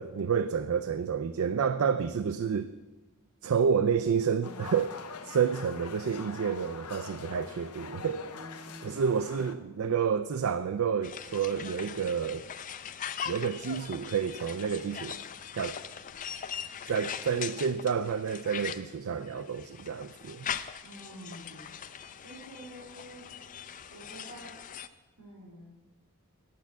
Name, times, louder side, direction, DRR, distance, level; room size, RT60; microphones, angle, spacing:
voice 1, 0.0-2.7 3.4-4.9 5.2-8.3 8.8-12.5 13.3-15.2 15.5-15.8 16.9-20.5, right 6 dB, 65° right, 12 dB, 0.4 m, -29 dB
sound 1, 4.4-9.5, left 4 dB, 80° left, 0.8 m, -43 dB
voice 2, 8.2-9.2 20.8-21.7 22.2-23.3 23.9-24.5 25.2-25.8, equal, 85° right, -5 dB, 3.4 m, -48 dB
sound 2, 11.0-24.9, left 8 dB, 35° left, 0.4 m, -41 dB
9.1 x 8.5 x 7.2 m, 1.2 s
head